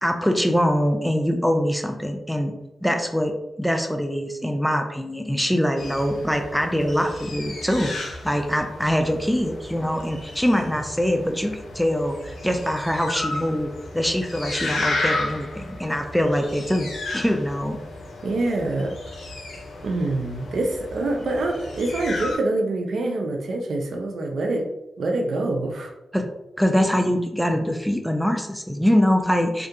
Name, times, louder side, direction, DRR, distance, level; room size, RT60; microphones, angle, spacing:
voice 1, 0.0-2.5 2.8-16.9 17.1-17.8 26.1-26.3 26.6-29.7, equal, ahead, 4 dB, 0.4 m, -23 dB
sound 1, 5.8-22.4, left 2 dB, 85° left, 0.6 m, -33 dB
voice 2, 18.2-18.9 19.8-24.7 25.0-25.9, right 2 dB, 75° right, 2 dB, 0.4 m, -25 dB
2.4 x 2.2 x 2.7 m, 0.89 s
cardioid pair, 50°, 0 cm